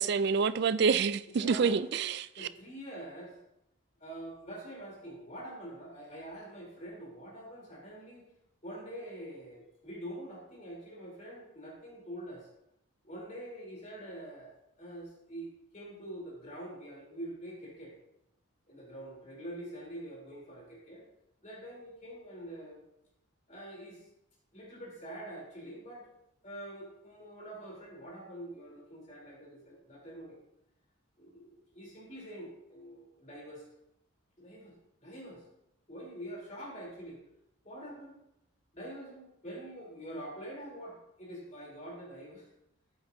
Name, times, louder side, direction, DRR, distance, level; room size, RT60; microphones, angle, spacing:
voice 1, 0.0-2.3, right 5 dB, 50° right, 0.3 m, -27 dB
voice 2, 1.3-1.8 2.3-3.4 4.0-8.3 8.6-12.5 13.0-14.5 14.8-17.9 18.7-21.0 21.4-22.8 23.5-24.1 24.5-26.1 26.4-30.4 31.2-33.6 34.4-34.7 35.0-35.4 35.9-37.2 37.6-38.2 38.7-42.5, right 1 dB, 35° left, 3.4 m, -45 dB
14.0 x 8.2 x 2.7 m
head